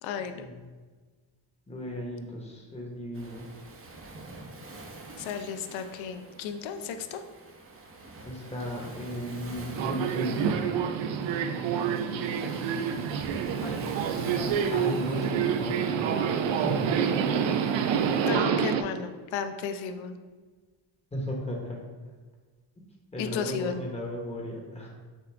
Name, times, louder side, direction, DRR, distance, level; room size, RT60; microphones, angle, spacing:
voice 1, 0.0-0.5 5.2-7.2 13.6-14.0 18.2-20.2 23.2-23.8, left 6 dB, 85° left, 8 dB, 0.6 m, -34 dB
voice 2, 1.7-3.5 8.2-10.6 13.8-16.2 16.5-16.9 21.1-21.8 22.8-22.9 23.1-24.9, equal, 15° left, -1 dB, 1.0 m, -35 dB
Waves surf, 3.1-18.3, right 2 dB, 30° right, 0.7 m, -46 dB
Subway metro underground, 9.7-18.8, right 7 dB, 80° right, 0.5 m, -27 dB
6.5 x 2.4 x 3.4 m, 1.4 s
cardioid pair, 105°, 45 cm